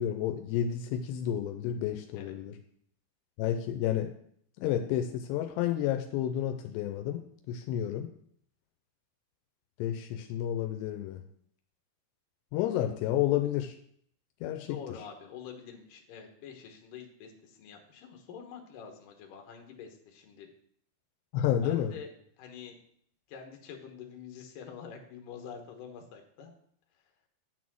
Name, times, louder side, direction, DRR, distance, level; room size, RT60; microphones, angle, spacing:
voice 1, 0.0-2.5 3.4-4.1 4.6-7.2 7.5-8.1 9.8-11.2 12.5-13.8 14.4-14.8 21.3-21.9, left 11 dB, 85° left, 6 dB, 2.7 m, -30 dB
voice 2, 14.7-20.5 21.6-22.1 22.4-22.8 23.3-26.5, left 7 dB, 65° left, 3 dB, 2.5 m, -46 dB
9.3 x 4.1 x 6.1 m, 0.66 s
omnidirectional pair, 4.9 m